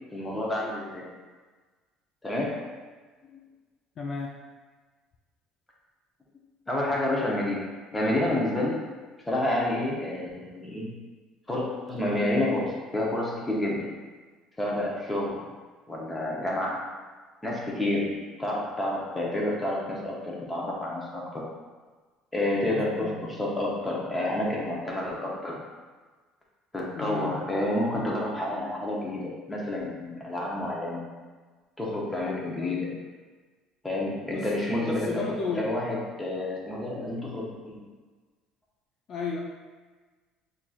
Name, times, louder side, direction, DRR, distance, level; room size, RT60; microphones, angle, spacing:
voice 1, 0.1-1.1 2.2-2.5 3.3-3.4 6.7-8.8 9.3-10.9 11.5-13.9 14.6-15.4 15.9-16.8 17.4-18.1 18.4-21.4 22.3-25.6 26.7-29.2 29.5-31.0 31.8-32.9 33.8-37.9, left 1 dB, 10° left, -4 dB, 0.7 m, -29 dB
voice 2, 4.0-4.3 22.7-23.2 26.9-27.4 32.6-32.9 34.3-34.5 34.8-35.8 39.1-39.4, left 4 dB, 40° left, -2 dB, 0.4 m, -33 dB
5.9 x 2.6 x 2.4 m, 1.4 s
cardioid pair, 155°, 0 cm